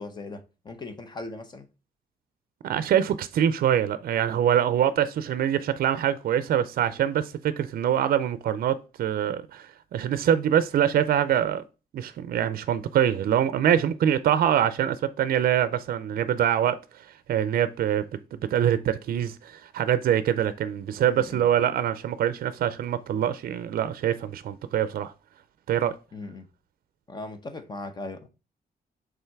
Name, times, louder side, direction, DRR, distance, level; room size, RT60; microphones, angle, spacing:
voice 1, 0.0-1.7 21.0-21.5 26.1-26.5 27.1-28.3, left 2 dB, 25° left, 0.8 m, -39 dB
voice 2, 2.6-11.6 11.9-18.1 18.5-25.1 25.7-25.9, right 10 dB, 65° right, 0.5 m, -24 dB
5.6 x 3.8 x 4.5 m
wide cardioid pair, 160°, 16 cm